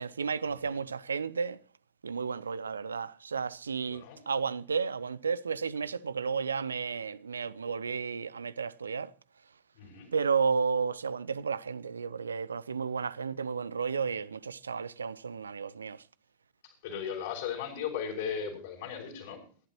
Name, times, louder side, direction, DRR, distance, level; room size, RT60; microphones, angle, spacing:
voice 1, 0.0-1.6 2.0-9.1 10.1-16.0, right 5 dB, 75° right, 0.5 m, -32 dB
voice 2, 9.7-10.1 16.8-19.4, left 7 dB, 55° left, 6.1 m, -37 dB
26.0 x 11.5 x 3.0 m
figure-of-eight pair, 90°, 0 cm